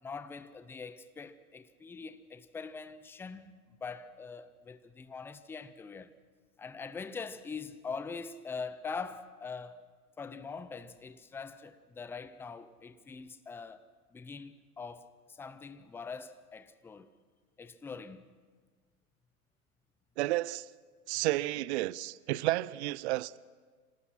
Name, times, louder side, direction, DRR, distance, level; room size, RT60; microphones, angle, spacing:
voice 1, 0.0-6.2 6.6-9.8 10.2-13.8 14.1-17.1 17.6-18.3, left 5 dB, 5° left, 0.6 m, -43 dB
voice 2, 20.2-20.7 21.1-23.4, right 17 dB, 50° right, 0.6 m, -31 dB
27.0 x 18.0 x 5.8 m
hypercardioid pair, 110°, 45 cm